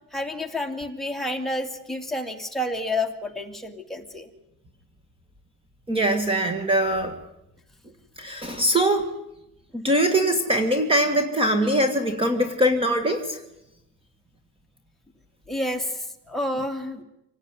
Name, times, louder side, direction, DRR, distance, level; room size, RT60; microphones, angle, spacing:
voice 1, 0.1-4.3 15.5-17.0, left 1 dB, ahead, 8 dB, 2.2 m, -29 dB
voice 2, 5.9-7.2 8.2-9.1 9.7-13.4, right 1 dB, 15° right, 7 dB, 1.8 m, -22 dB
26.0 x 18.0 x 9.7 m, 0.88 s
cardioid pair, 160°, 32 cm